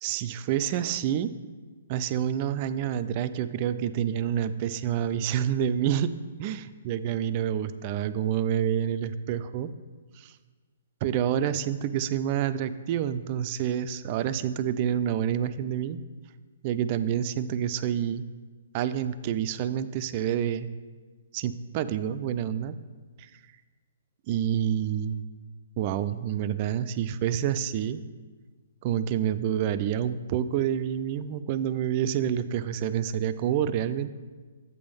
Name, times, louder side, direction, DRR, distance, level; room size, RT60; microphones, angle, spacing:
voice 1, 0.0-1.3 1.9-6.1 6.4-6.6 6.9-9.7 10.2-10.3 11.0-16.0 16.6-18.3 18.7-20.7 21.3-22.8 23.2-23.4 24.3-25.3 25.8-28.0 28.8-34.1, right 9 dB, 40° right, 13 dB, 0.3 m, -28 dB
8.2 x 3.5 x 5.2 m, 1.4 s
hypercardioid pair, 140°, 0 cm